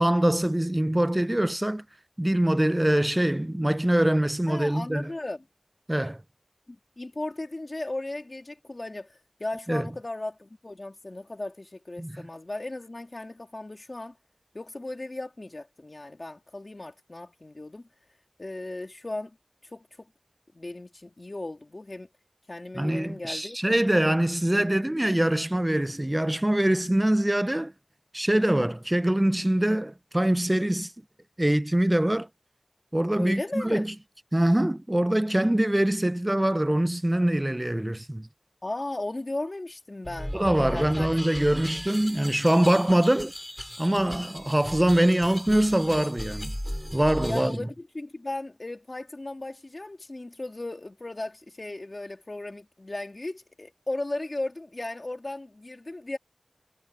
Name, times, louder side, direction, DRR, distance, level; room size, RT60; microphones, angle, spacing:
voice 1, 0.0-1.8 2.2-5.1 5.9-6.2 9.7-9.9 12.0-12.2 22.7-27.7 28.1-30.9 31.4-32.3 32.9-33.9 34.3-38.3 40.3-43.3 43.8-46.5 46.9-47.6, right 1 dB, 25° right, 0.4 m, -24 dB
voice 2, 4.5-5.4 6.7-14.2 14.5-17.9 18.4-19.4 19.6-20.1 20.5-22.1 22.5-23.6 33.2-33.9 38.6-40.4 40.7-41.1 47.3-56.2, left 2 dB, 55° left, 2.3 m, -36 dB
sound 1, 40.0-47.6, equal, 5° left, 3.9 m, -37 dB
wide cardioid pair, 50°, 0 cm